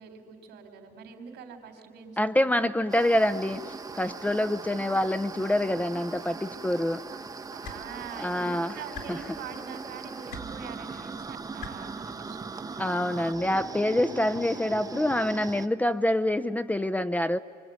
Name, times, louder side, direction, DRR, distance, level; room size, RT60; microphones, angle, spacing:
voice 1, 0.0-2.6 7.1-12.8, right 6 dB, 85° right, 3.9 m, -44 dB
voice 2, 2.2-7.0 8.2-8.8 9.1-9.2 12.8-17.4, left 1 dB, 10° left, 0.6 m, -26 dB
sound 1, 2.9-15.7, right 4 dB, 20° right, 0.8 m, -40 dB
sound 2, 7.6-7.8 8.9-9.1 10.3-10.4 11.6-11.7 13.0-13.1, left 6 dB, 75° left, 4.4 m, -39 dB
26.5 x 24.0 x 9.5 m
cardioid pair, 110°, 17 cm